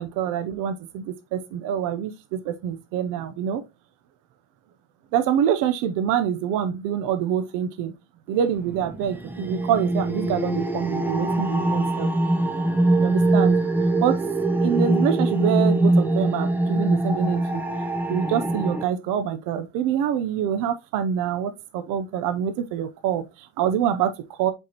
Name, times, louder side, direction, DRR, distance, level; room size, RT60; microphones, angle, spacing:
voice 1, 0.0-3.6 5.1-7.9 8.3-12.1 13.0-13.6 14.0-14.2 14.6-17.6 18.1-24.5, right 9 dB, 70° right, 0.7 m, -26 dB
sound 1, 8.6-18.8, right 2 dB, 5° right, 0.4 m, -23 dB
7.9 x 4.3 x 2.9 m
cardioid pair, 170°, 32 cm